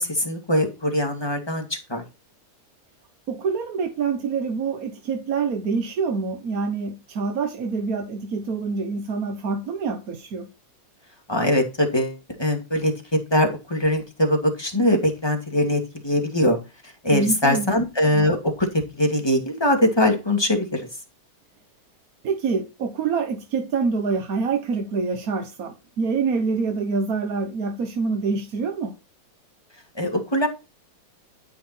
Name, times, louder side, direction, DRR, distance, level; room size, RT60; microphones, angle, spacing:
voice 1, 0.0-2.0 11.3-12.9 13.3-16.6 17.0-20.9 30.0-30.5, left 1 dB, 10° left, 2.4 m, -22 dB
voice 2, 3.3-10.5 17.1-17.7 22.2-29.0, right 4 dB, 50° right, 1.3 m, -26 dB
13.0 x 5.6 x 4.4 m
omnidirectional pair, 2.4 m